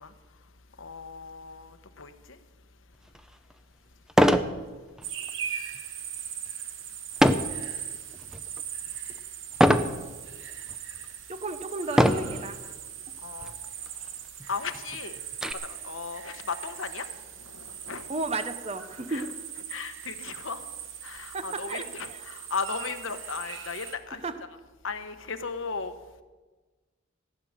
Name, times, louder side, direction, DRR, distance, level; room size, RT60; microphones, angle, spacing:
voice 1, 0.8-1.7 2.0-2.1 13.2-13.5 14.5-15.2 15.8-16.3 16.6-17.0 17.9-18.0 19.1-19.3 19.7-20.6 21.0-24.2 24.8-25.9, left 5 dB, 75° left, 8 dB, 1.1 m, -35 dB
sound 1, 3.2-3.3 4.1-4.5 5.0-5.3 7.2-7.6 8.2-8.6 9.6-10.0 10.7-10.8 11.9-12.4 13.4-13.5 13.9-14.0 14.4-15.5, equal, 5° right, 0.5 m, -21 dB
sound 2, 5.0-23.9, right 9 dB, 70° right, 1.1 m, -40 dB
voice 2, 11.3-12.6 18.1-19.3 21.3-22.2 24.1-24.4, right 3 dB, 30° right, 9 dB, 0.8 m, -34 dB
15.5 x 9.4 x 6.6 m, 1.3 s
head